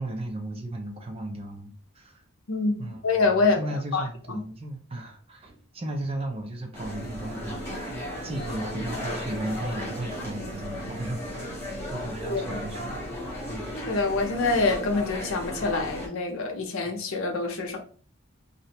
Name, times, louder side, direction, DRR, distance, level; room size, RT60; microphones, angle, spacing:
voice 1, 0.0-2.2 2.8-3.0 3.4-7.7 8.2-11.6 11.9-13.0 13.5-13.7 16.8-16.9, right 1 dB, 30° right, 0.4 m, -35 dB
voice 2, 2.5-3.6 3.9-4.4 12.3-12.6 13.9-17.8, left 3 dB, 75° left, 0.6 m, -26 dB
sound 1, 6.7-16.1, equal, 10° left, 0.7 m, -35 dB
2.4 x 2.1 x 2.7 m
head